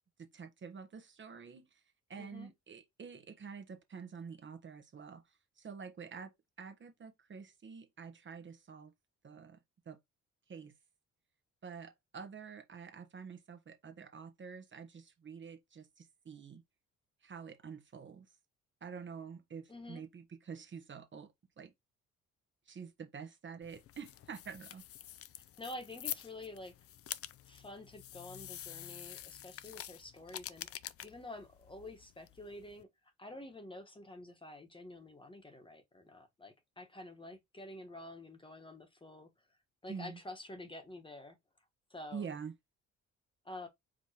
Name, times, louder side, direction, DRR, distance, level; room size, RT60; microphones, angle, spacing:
voice 1, 0.2-1.8 2.1-8.9 9.2-9.6 9.9-10.0 10.5-10.8 11.6-16.6 17.2-18.3 18.8-21.3 21.6-21.7 22.7-24.8 39.9-40.2 42.1-42.5, right 6 dB, 40° right, 1.0 m, -48 dB
voice 2, 2.2-2.5 19.7-20.0 25.6-26.7 27.4-30.7 31.0-32.9 33.2-39.3 39.8-41.4 41.9-42.3 43.4-43.7, left 1 dB, 15° left, 1.2 m, -48 dB
sound 1, 23.6-32.8, left 12 dB, 50° left, 0.5 m, -47 dB
4.9 x 3.5 x 2.9 m
cardioid pair, 90°, 30 cm